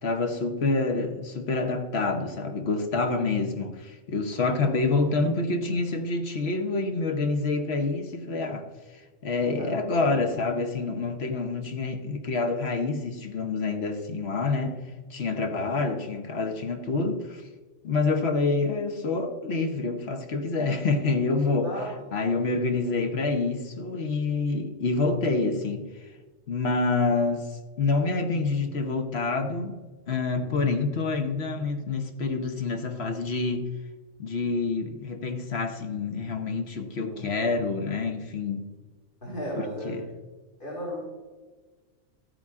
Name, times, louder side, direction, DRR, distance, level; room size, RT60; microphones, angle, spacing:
voice 1, 0.0-8.7 8.9-14.8 15.1-17.4 17.8-21.7 22.1-26.1 26.5-29.8 30.1-33.7 34.2-38.6 39.6-40.0, left 3 dB, 55° left, 6 dB, 1.2 m, -27 dB
voice 2, 15.3-15.7 21.6-21.9 30.3-30.6 37.1-37.4 39.2-39.9 40.6-41.0, equal, 40° left, -5 dB, 2.8 m, -36 dB
14.0 x 8.9 x 3.6 m, 1.3 s
omnidirectional pair, 1.4 m